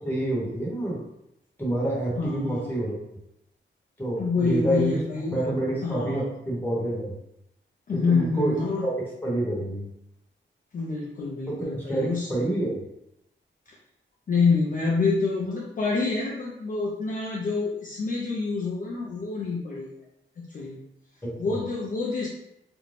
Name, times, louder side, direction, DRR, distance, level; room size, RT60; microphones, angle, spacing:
voice 1, 0.0-1.0 1.6-3.0 4.0-5.0 5.3-7.2 8.1-8.5 8.8-9.9 11.5-12.8 21.2-21.5, right 1 dB, 10° left, -6 dB, 0.9 m, -28 dB
voice 2, 2.2-2.8 4.2-5.4 5.8-6.3 7.9-8.9 10.7-12.3 14.3-19.9 20.5-20.8 21.4-22.3, left 4 dB, 45° left, -4 dB, 0.4 m, -27 dB
2.5 x 2.1 x 3.2 m, 0.83 s
wide cardioid pair, 150°, 20 cm